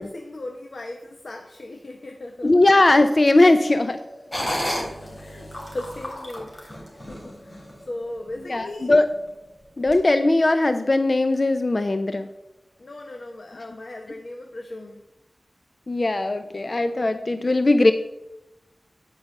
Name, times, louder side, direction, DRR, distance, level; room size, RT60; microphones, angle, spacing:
voice 1, 0.0-2.5 4.4-6.8 7.1-8.9 12.8-15.0, left 1 dB, 60° left, 2 dB, 1.0 m, -37 dB
voice 2, 2.4-4.0 8.5-9.1 9.8-12.3 15.9-17.9, left 2 dB, 40° left, 9 dB, 0.5 m, -19 dB
sound 1, 2.9-13.3, equal, 10° left, 3.7 m, -47 dB
sound 2, 4.3-7.8 8.3-8.4 8.9-9.3 9.9-10.0, equal, 25° left, 3.4 m, -32 dB
10.5 x 5.5 x 6.7 m, 0.91 s
wide cardioid pair, 80°, 0 cm